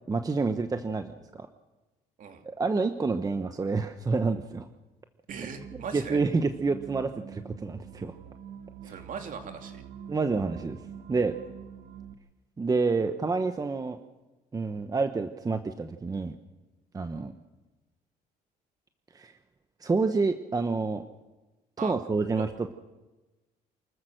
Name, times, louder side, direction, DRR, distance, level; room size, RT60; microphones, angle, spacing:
voice 1, 0.1-1.1 1.4-1.5 2.4-4.7 5.9-8.1 8.8-8.9 10.1-10.8 11.1-11.3 12.6-14.0 14.5-16.3 16.9-17.3 19.1-19.3 19.8-21.0 21.8-22.7, right 4 dB, 20° right, 8 dB, 1.0 m, -28 dB
voice 2, 5.3-6.2 8.8-9.8 21.8-21.9 22.4-22.5, right 6 dB, 50° right, 5 dB, 2.8 m, -39 dB
sound 1, 5.3-12.1, right 8 dB, 70° right, 1.4 m, -46 dB
29.0 x 14.0 x 6.5 m, 1.1 s
cardioid pair, 110°, 17 cm